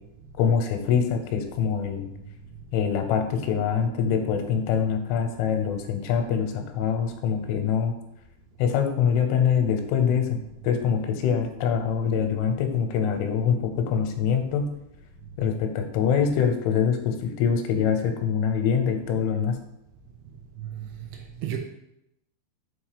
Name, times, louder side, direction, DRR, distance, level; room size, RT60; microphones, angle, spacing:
voice 1, 0.4-2.1 2.7-7.9 8.6-10.4 10.6-14.7 15.4-19.6, left 7 dB, 90° left, 3.2 m, -24 dB
voice 2, 21.1-21.6, right 11 dB, 80° right, 2.6 m, -33 dB
7.0 x 3.0 x 4.9 m
omnidirectional pair, 5.3 m